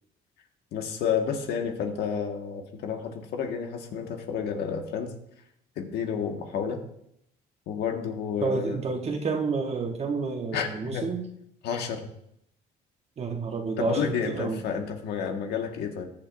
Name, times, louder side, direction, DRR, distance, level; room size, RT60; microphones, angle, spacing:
voice 1, 0.7-5.2 5.7-6.8 7.7-8.8 10.5-11.1 11.6-12.1 13.8-16.0, left 7 dB, 80° left, 3 dB, 1.7 m, -30 dB
voice 2, 8.4-11.3 13.2-14.6, right 4 dB, 40° right, 3 dB, 1.2 m, -29 dB
21.0 x 7.3 x 2.7 m, 0.76 s
cardioid pair, 110°, 17 cm